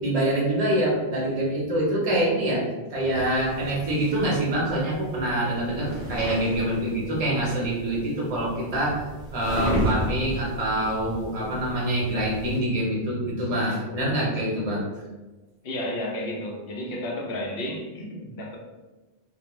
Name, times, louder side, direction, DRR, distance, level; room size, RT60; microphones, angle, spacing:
voice 1, 0.0-14.8, right 1 dB, 40° right, -5 dB, 0.7 m, -25 dB
sound 1, 3.1-12.6, equal, 30° left, 0.9 m, -34 dB
voice 2, 15.6-18.6, left 1 dB, 65° left, -1 dB, 0.8 m, -32 dB
2.4 x 2.0 x 3.0 m, 1.2 s
omnidirectional pair, 1.1 m